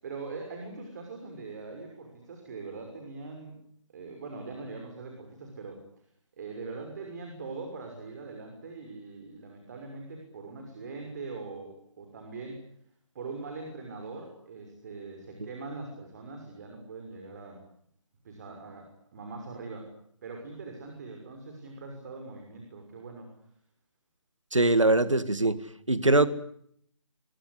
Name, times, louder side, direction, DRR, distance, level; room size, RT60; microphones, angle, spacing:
voice 1, 0.0-3.6 3.9-5.8 6.4-12.6 13.1-17.6 18.2-19.9 20.2-23.3, right 3 dB, 35° right, 3 dB, 6.2 m, -42 dB
voice 2, 24.5-25.6 25.9-26.3, right 2 dB, 80° right, 14 dB, 2.0 m, -22 dB
26.0 x 23.5 x 8.2 m, 0.69 s
figure-of-eight pair, 145°, 16 cm